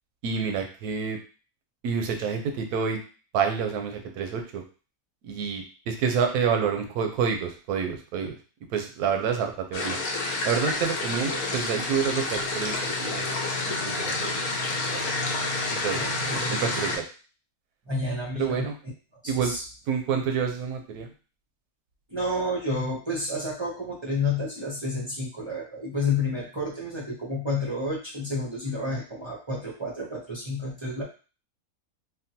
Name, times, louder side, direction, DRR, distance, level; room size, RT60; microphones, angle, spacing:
voice 1, 0.2-1.2 1.8-3.0 3.3-4.6 5.2-8.4 8.7-10.0 10.4-13.4 13.6-14.4 14.9-15.0 15.7-16.0 16.5-17.0 18.4-18.7 19.3-19.6 19.9-21.1, right 6 dB, 85° right, 4 dB, 1.1 m, -28 dB
sound 1, 9.7-17.0, left 2 dB, 85° left, 1.2 m, -29 dB
voice 2, 15.9-16.5 17.9-18.7 19.2-19.6 22.1-31.0, left 2 dB, 35° right, -4 dB, 0.5 m, -30 dB
3.6 x 2.2 x 2.7 m, 0.36 s
omnidirectional pair, 1.6 m